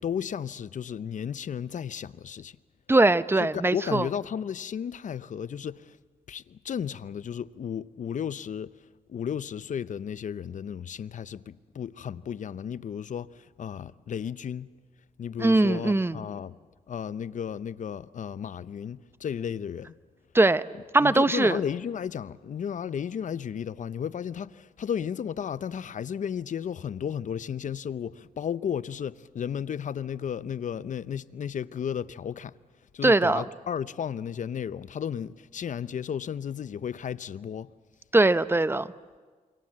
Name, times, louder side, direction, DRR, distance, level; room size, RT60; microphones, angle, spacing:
voice 1, 0.0-2.6 3.4-6.0 6.3-8.7 9.1-14.7 15.2-16.6 16.9-20.0 21.0-32.5 32.9-37.7, left 8 dB, 60° left, 0.7 m, -34 dB
voice 2, 2.9-4.1 15.4-16.2 20.3-20.6 20.9-21.6 33.0-33.4 38.1-38.9, right 2 dB, 15° right, 0.8 m, -21 dB
27.5 x 24.0 x 7.5 m
cardioid pair, 70°, 14 cm